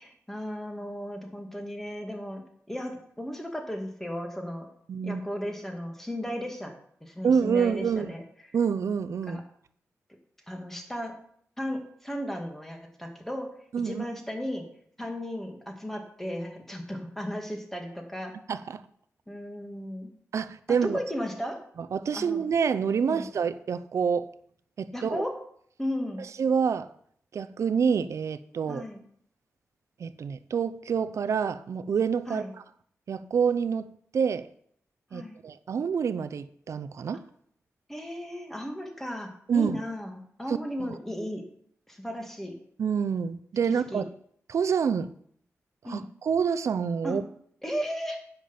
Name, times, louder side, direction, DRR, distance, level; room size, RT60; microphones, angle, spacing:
voice 1, 0.0-2.4 2.7-4.7 5.0-6.7 7.0-8.2 9.3-9.4 10.5-11.1 11.6-13.5 13.8-14.6 15.0-18.3 19.3-20.1 20.7-21.6 22.1-22.4 23.0-23.3 24.9-25.3 25.8-26.2 28.7-29.0 32.3-32.5 35.1-35.4 37.9-41.4 41.9-42.5 43.9-44.0 45.8-46.0 47.0-47.2 47.6-48.2, equal, 5° left, 2 dB, 2.1 m, -35 dB
voice 2, 4.9-5.2 7.2-8.1 8.5-9.4 13.7-14.0 18.5-18.8 20.3-21.0 21.8-24.3 24.8-25.2 26.4-26.9 27.3-28.8 30.0-32.6 33.1-33.9 34.1-34.5 35.1-37.2 39.5-39.8 40.5-40.9 42.8-44.1 44.5-45.1 45.8-47.2, right 6 dB, 70° right, 13 dB, 0.6 m, -27 dB
10.0 x 6.0 x 7.1 m, 0.64 s
wide cardioid pair, 130°, 5 cm